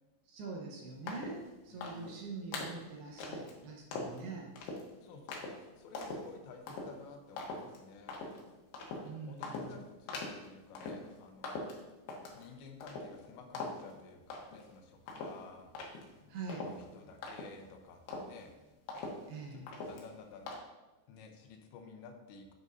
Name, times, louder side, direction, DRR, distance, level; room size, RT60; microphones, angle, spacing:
voice 1, 0.3-4.5 9.0-9.8 16.3-16.7 19.3-19.7, right 4 dB, 70° right, -1 dB, 2.8 m, -44 dB
sound 1, 1.1-1.4 1.8-2.2 2.5-2.8 3.2-3.5 3.9-4.2 4.6-4.9 5.3-5.6 6.0-6.3 6.7-6.9 7.4-7.8 8.1-8.4 8.7-9.1 9.4-9.7 10.1-10.5 10.8-11.1 11.4-12.4 12.8-13.3 13.5-13.9 14.3-14.7 15.1-17.8 18.1-18.4 18.9-19.4 19.7-20.1 20.5-20.6, left 3 dB, 70° left, 2.9 m, -42 dB
voice 2, 1.7-2.3 5.0-8.2 9.3-11.5 12.3-15.7 16.6-18.5 19.5-20.5 21.1-22.5, left 4 dB, 85° left, 4 dB, 3.1 m, -53 dB
9.0 x 8.0 x 2.7 m, 1.1 s
omnidirectional pair, 5.1 m